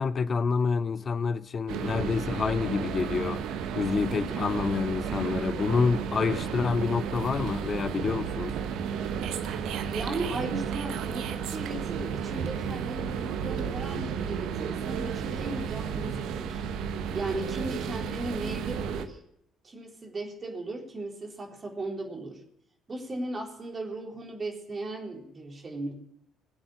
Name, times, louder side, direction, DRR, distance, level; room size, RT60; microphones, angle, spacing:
voice 1, 0.0-3.4 3.7-8.6, left 5 dB, 35° left, 0.6 m, -28 dB
sound 1, 1.7-19.1, right 7 dB, 60° right, 1.1 m, -32 dB
voice 2, 9.5-16.6 17.1-19.2 19.6-22.4 22.9-25.9, right 2 dB, 30° right, 3.8 m, -37 dB
21.0 x 7.9 x 7.3 m
figure-of-eight pair, 50°, 0 cm